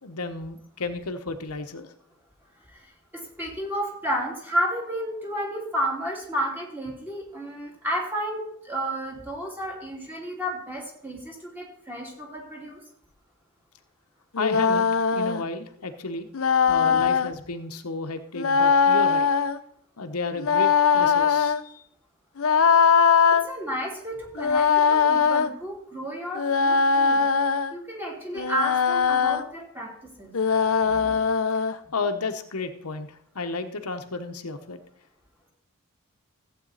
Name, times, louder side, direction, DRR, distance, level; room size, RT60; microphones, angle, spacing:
voice 1, 0.0-1.9 14.4-16.3 16.7-19.3 20.0-21.8 31.7-34.8, left 3 dB, 85° left, 6 dB, 1.1 m, -32 dB
voice 2, 3.1-12.8 16.8-17.0 23.3-27.2 27.7-29.9 30.2-30.3 30.8-31.2, equal, 10° right, -1 dB, 3.0 m, -32 dB
sound 1, 14.4-15.4 16.3-17.3 18.4-19.6 20.4-21.6 22.4-23.4 24.4-25.5 26.4-27.7 28.4-29.4 30.3-31.8, left 6 dB, 65° left, 0.7 m, -21 dB
15.0 x 8.3 x 4.1 m, 0.68 s
head